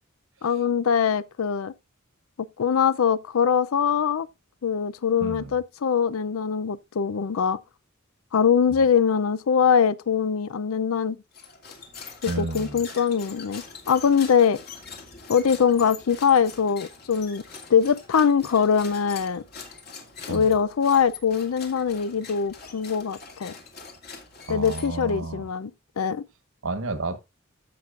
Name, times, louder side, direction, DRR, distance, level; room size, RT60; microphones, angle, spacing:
voice 1, 0.4-1.7 2.6-4.3 4.6-7.6 8.3-11.2 12.2-14.6 15.3-17.4 17.7-19.4 20.3-23.6 24.5-25.7 26.0-26.3, left 7 dB, 85° left, 0.5 m, -22 dB
voice 2, 5.2-5.5 12.2-12.8 20.3-20.5 24.5-25.4 26.6-27.2, right 2 dB, 65° right, 1.3 m, -31 dB
sound 1, 11.3-25.3, left 5 dB, 50° left, 2.4 m, -43 dB
15.5 x 6.0 x 2.5 m
head